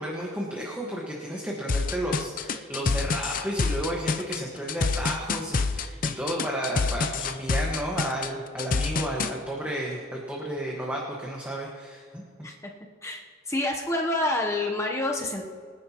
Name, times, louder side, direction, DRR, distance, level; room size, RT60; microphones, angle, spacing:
voice 1, 0.0-12.3, right 1 dB, 5° right, -3 dB, 1.5 m, -32 dB
sound 1, 1.7-9.3, left 4 dB, 40° left, 0.5 m, -27 dB
voice 2, 13.5-15.4, left 2 dB, 15° left, 0 dB, 0.9 m, -27 dB
24.5 x 9.9 x 3.0 m, 2.1 s
head